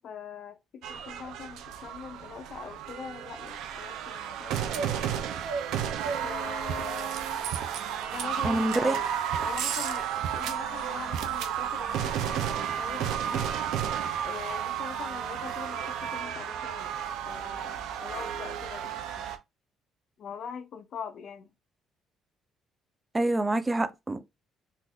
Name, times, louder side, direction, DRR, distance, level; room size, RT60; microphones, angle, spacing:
voice 1, 0.0-4.9 6.2-7.2 8.1-13.5 14.2-17.0 17.3-19.3 20.2-21.5, left 7 dB, 55° left, 0.6 m, -42 dB
sound 1, 0.8-19.4, right 9 dB, 80° right, 0.5 m, -32 dB
voice 2, 8.4-8.9 23.1-24.2, right 2 dB, 20° right, 0.4 m, -26 dB
3.8 x 2.4 x 2.6 m
cardioid pair, 105°, 0 cm